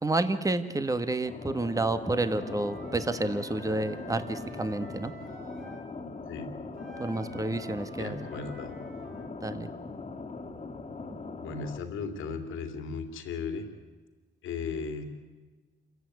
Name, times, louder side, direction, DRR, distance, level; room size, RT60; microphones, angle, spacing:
voice 1, 0.0-5.1 7.0-8.2 9.4-9.7, right 2 dB, 15° right, 10 dB, 1.5 m, -30 dB
sound 1, 1.3-11.8, left 3 dB, 35° left, 2.2 m, -41 dB
Wind instrument woodwind instrument, 2.3-5.9 6.7-9.3, right 1 dB, 50° right, 6.6 m, -49 dB
voice 2, 6.3-6.6 8.0-8.8 11.4-13.7 14.4-15.0, left 5 dB, 85° left, 7 dB, 2.7 m, -36 dB
27.5 x 15.5 x 9.7 m, 1.3 s
cardioid pair, 90°, 20 cm